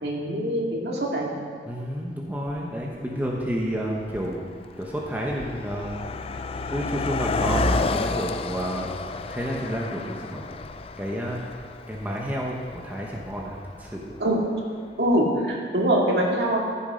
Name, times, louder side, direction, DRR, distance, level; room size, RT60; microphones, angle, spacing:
voice 1, 0.0-1.3 14.2-14.4 15.0-16.6, right 1 dB, 65° right, -2 dB, 2.2 m, -23 dB
voice 2, 1.7-4.5 4.8-6.0 6.7-10.6 11.0-11.4 11.9-14.2, equal, 10° right, -2 dB, 1.0 m, -30 dB
Car passing by, 2.5-2.6 3.4-3.6 3.9-14.3, left 3 dB, 30° left, 0.4 m, -31 dB
14.5 x 7.2 x 5.1 m, 2.2 s
head